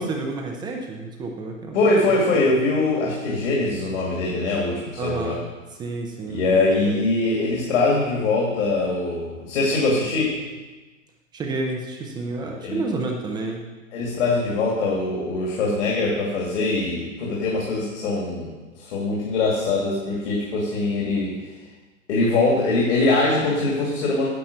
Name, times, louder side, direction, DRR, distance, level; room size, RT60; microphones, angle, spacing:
voice 1, 0.0-1.8 2.1-2.2 5.0-5.4 5.7-7.0 11.3-13.6, right 3 dB, 10° right, 1 dB, 0.6 m, -30 dB
voice 2, 1.7-5.3 6.3-10.3 12.6-12.8 13.9-18.5 18.8-21.3 22.1-24.3, left 2 dB, 55° left, -3 dB, 2.5 m, -22 dB
10.5 x 5.9 x 6.6 m, 1.2 s
hypercardioid pair, 135°, 40 cm